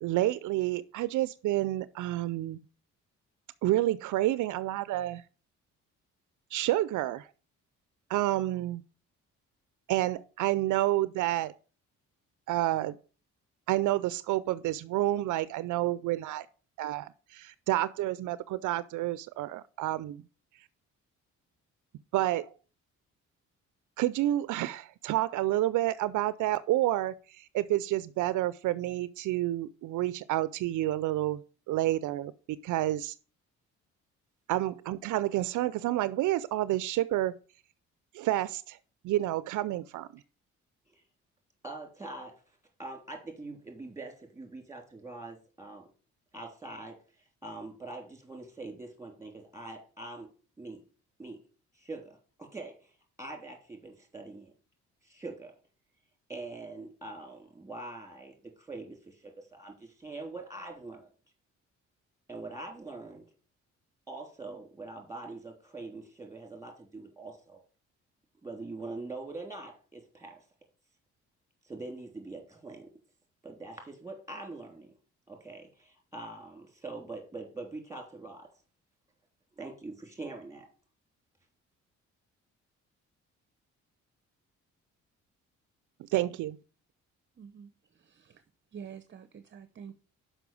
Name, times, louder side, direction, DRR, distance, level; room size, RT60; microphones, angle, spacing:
voice 1, 0.0-2.6 3.6-5.2 6.5-7.3 8.1-8.8 9.9-11.5 12.5-13.0 13.7-16.5 16.8-20.2 22.1-22.5 24.0-31.4 31.7-32.3 32.6-33.1 34.5-37.3 38.1-38.8 39.0-40.1 86.1-86.6, right 15 dB, 80° right, 0.5 m, -29 dB
voice 2, 41.6-42.4 42.8-45.9 46.3-47.0 47.4-50.3 50.6-50.8 51.2-51.4 51.7-52.9 53.2-54.5 55.0-55.5 56.3-61.1 62.3-63.2 64.1-67.6 68.4-70.4 71.6-72.9 73.4-75.0 75.3-78.5 79.6-80.7, right 2 dB, 10° right, 3.3 m, -43 dB
voice 3, 87.4-88.4 88.7-89.9, right 7 dB, 40° right, 0.8 m, -48 dB
6.0 x 5.6 x 6.9 m
cardioid pair, 90°, 30 cm